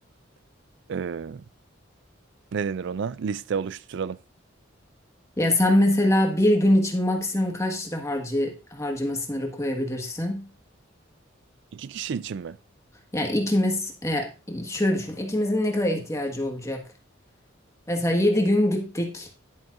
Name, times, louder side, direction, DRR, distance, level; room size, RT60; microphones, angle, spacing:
voice 1, 0.9-1.4 2.5-4.2 11.7-12.6, right 6 dB, 65° right, 0.4 m, -30 dB
voice 2, 5.4-10.5 13.1-16.8 17.9-19.3, left 1 dB, 15° left, 1.7 m, -24 dB
11.0 x 8.9 x 2.6 m
head